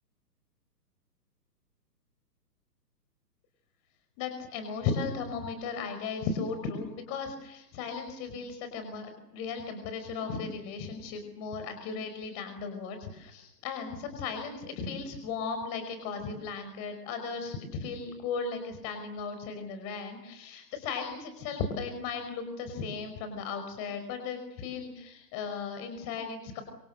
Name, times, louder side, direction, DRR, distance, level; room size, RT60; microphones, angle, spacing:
voice 1, 4.2-26.6, left 5 dB, 30° left, 7 dB, 5.6 m, -36 dB
28.0 x 28.0 x 6.8 m, 0.86 s
hypercardioid pair, 130°, 50 cm